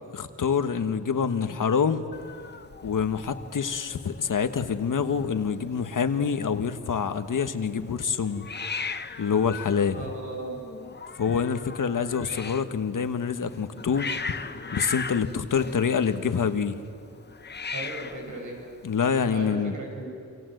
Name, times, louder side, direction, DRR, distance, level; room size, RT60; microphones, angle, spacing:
voice 1, 0.1-2.0 2.8-8.5 9.2-10.0 11.2-14.1 14.7-16.8 18.8-19.8, left 6 dB, 85° left, 9 dB, 1.4 m, -26 dB
Hiss, 2.1-19.5, left 4 dB, 35° left, 0.8 m, -39 dB
voice 2, 10.0-10.6 17.7-18.6 19.3-20.1, right 2 dB, 70° right, 1 dB, 7.6 m, -36 dB
29.5 x 25.5 x 8.0 m, 2.3 s
wide cardioid pair, 165°, 31 cm